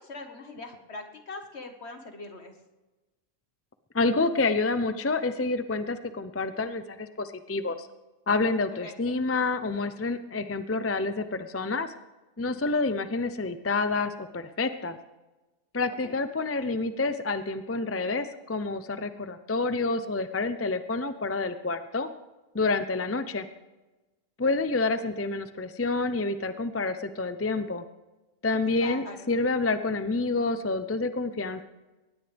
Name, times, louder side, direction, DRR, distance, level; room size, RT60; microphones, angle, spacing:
voice 1, 0.0-2.5 8.8-9.1 16.0-16.2 28.8-29.4, left 3 dB, 50° left, 5 dB, 1.9 m, -42 dB
voice 2, 3.9-7.9 8.3-11.9 12.4-15.0 15.7-22.1 22.5-23.5 24.4-27.8 28.4-31.6, left 3 dB, 20° left, 10 dB, 0.4 m, -28 dB
22.0 x 18.5 x 3.5 m, 1.1 s
omnidirectional pair, 1.4 m